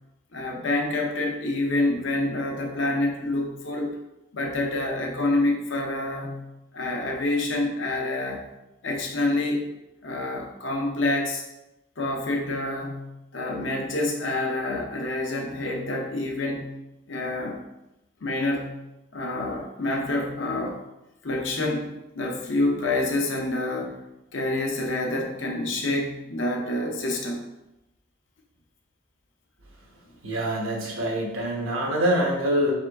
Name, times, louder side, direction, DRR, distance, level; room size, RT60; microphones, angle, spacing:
voice 1, 0.3-4.0 4.3-6.4 6.7-8.4 8.8-9.7 10.0-11.4 12.0-16.7 17.1-17.6 18.2-18.8 19.1-20.8 21.2-23.9 24.3-27.4, left 2 dB, 65° left, 1 dB, 0.8 m, -27 dB
voice 2, 30.2-32.7, equal, 85° right, -1 dB, 1.1 m, -25 dB
3.8 x 3.6 x 3.5 m, 0.92 s
head